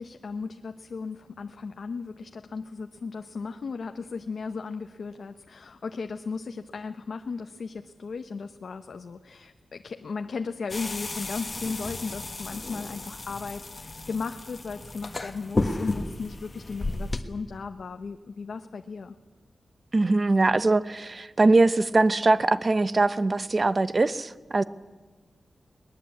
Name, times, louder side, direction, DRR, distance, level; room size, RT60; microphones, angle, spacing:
voice 1, 0.0-19.2, left 4 dB, 65° left, 0.8 m, -36 dB
sound 1, 10.7-17.2, left 2 dB, 30° left, 1.5 m, -33 dB
voice 2, 19.9-24.6, right 3 dB, 35° right, 0.8 m, -22 dB
22.0 x 20.0 x 8.5 m
wide cardioid pair, 135°, 0 cm